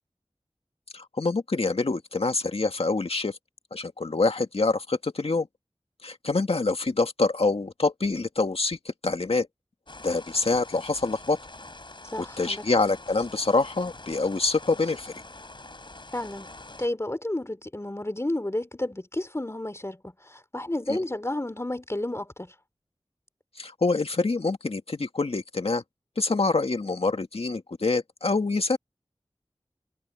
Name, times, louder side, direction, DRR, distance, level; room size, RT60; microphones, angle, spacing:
voice 1, 0.9-3.4 3.7-5.5 6.0-9.5 10.0-11.4 12.4-15.1 20.9-21.0 23.6-25.8 26.2-28.8, left 3 dB, 75° left, 2.0 m, -26 dB
sound 1, 9.9-16.9, left 2 dB, 55° left, 3.9 m, -45 dB
voice 2, 12.1-12.6 16.1-16.5 16.8-22.5, left 1 dB, 25° left, 3.2 m, -31 dB
wide cardioid pair, 45°, 10 cm